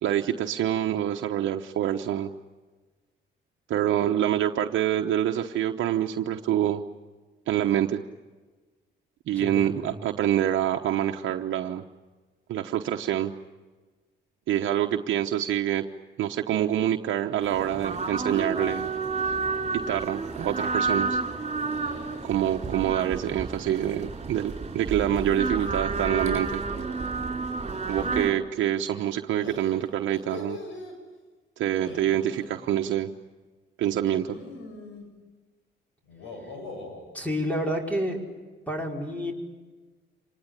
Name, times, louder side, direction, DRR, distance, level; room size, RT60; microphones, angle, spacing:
voice 1, 0.0-2.3 3.7-6.8 7.5-8.0 9.3-11.8 12.5-13.3 14.5-15.8 16.2-18.9 19.7-21.2 22.2-26.6 27.9-30.6 31.6-33.1 33.8-34.4, right 11 dB, 75° right, 3 dB, 1.1 m, -26 dB
voice 2, 9.4-9.9 37.1-38.2 38.7-39.3, equal, 5° left, 1 dB, 5.4 m, -29 dB
sound 1, 17.4-28.3, right 4 dB, 35° right, 4.5 m, -30 dB
sound 2, 18.7-19.1 19.4-19.9 21.7-22.9 25.0-26.4 27.8-28.2 29.4-30.9 31.7-32.5 33.9-35.0 36.0-37.0, left 2 dB, 85° left, 7.6 m, -43 dB
26.5 x 19.5 x 9.9 m, 1.3 s
cardioid pair, 90°, 20 cm